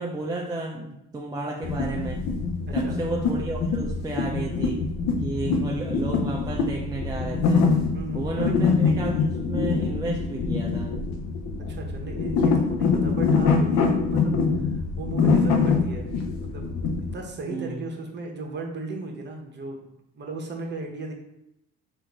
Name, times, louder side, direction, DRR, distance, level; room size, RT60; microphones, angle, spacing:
voice 1, 0.0-2.3 2.7-4.8 5.2-7.7 8.1-10.9 17.5-17.9, right 2 dB, 15° right, -2 dB, 0.6 m, -32 dB
sound 1, 1.6-17.1, left 4 dB, 65° left, 0.7 m, -24 dB
voice 2, 7.9-8.6 11.7-16.1 16.4-16.7 17.1-21.1, right 3 dB, 35° right, 1 dB, 1.1 m, -36 dB
3.7 x 2.7 x 4.6 m, 0.83 s
supercardioid pair, 85°, 29 cm